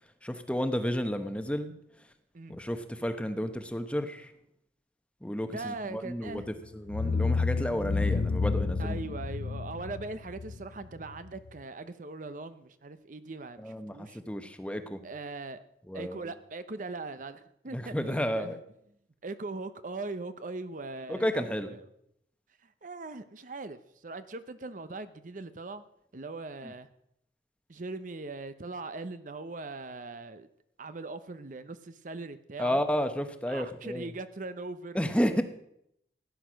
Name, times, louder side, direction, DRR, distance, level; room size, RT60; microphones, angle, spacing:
voice 1, 0.2-2.1 2.5-4.3 5.2-9.0 13.6-15.0 15.9-16.3 17.7-18.6 21.1-21.7 26.6-26.7 32.6-34.1 34.9-35.4, equal, 5° left, 8 dB, 1.0 m, -32 dB
voice 2, 5.5-6.5 8.8-14.2 15.0-15.6 15.9-18.6 19.2-21.8 22.6-25.8 26.1-26.9 27.7-30.5 30.8-32.8 33.5-35.0 35.3-35.4, right 3 dB, 45° right, 12 dB, 0.7 m, -40 dB
sound 1, 6.3-6.5 6.9-11.5, left 4 dB, 75° left, 0.4 m, -30 dB
16.0 x 10.0 x 6.3 m, 0.76 s
head